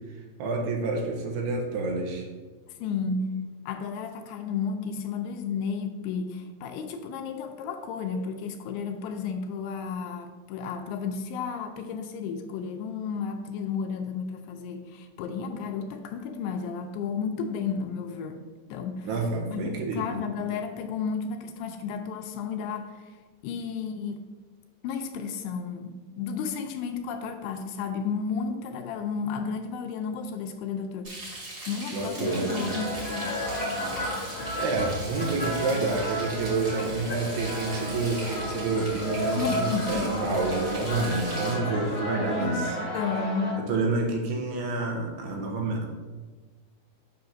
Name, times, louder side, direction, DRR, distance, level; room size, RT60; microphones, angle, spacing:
voice 1, 0.4-2.3 19.0-20.1 31.9-32.7 34.5-42.8 43.6-45.9, right 3 dB, 85° right, 0 dB, 2.8 m, -28 dB
voice 2, 2.8-18.4 18.7-19.1 19.5-23.2 23.4-24.2 24.8-31.1 31.7-33.3 39.4-40.1 42.4-42.6 42.9-43.6, left 5 dB, 85° left, 6 dB, 2.5 m, -32 dB
Frying (food), 31.0-41.5, right 2 dB, 45° right, 1.5 m, -40 dB
sound 1, 32.2-43.5, equal, 55° left, 1.3 m, -32 dB
sound 2, 32.6-41.1, left 1 dB, 65° right, 0.6 m, -44 dB
8.0 x 5.7 x 2.6 m, 1.3 s
omnidirectional pair, 4.8 m